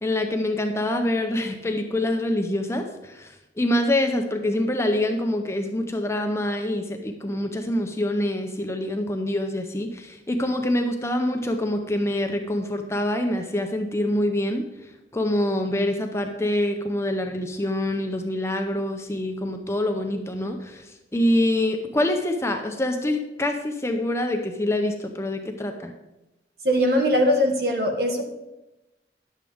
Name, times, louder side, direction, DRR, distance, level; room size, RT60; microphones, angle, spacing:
voice 1, 0.0-25.9, left 1 dB, 15° left, 4 dB, 0.6 m, -25 dB
voice 2, 26.6-28.2, equal, 60° right, 3 dB, 1.4 m, -21 dB
11.0 x 7.3 x 3.5 m, 0.98 s
head